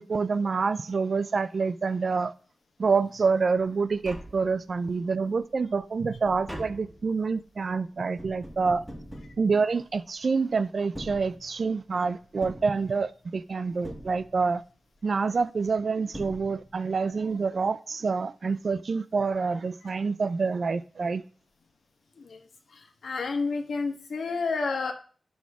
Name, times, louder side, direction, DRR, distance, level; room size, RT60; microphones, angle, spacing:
voice 1, 0.0-2.3 2.8-8.8 9.4-14.6 15.0-21.2, right 4 dB, 45° right, 0.4 m, -27 dB
Tap, 3.9-5.0 5.4-10.2 10.8-11.9 12.4-13.4 13.8-14.7 15.7-15.8 16.1-17.0 17.2-17.3, equal, ahead, 1.0 m, -44 dB
voice 2, 22.7-24.9, left 4 dB, 85° left, 1.3 m, -30 dB
11.5 x 6.2 x 3.5 m
wide cardioid pair, 180°, 0 cm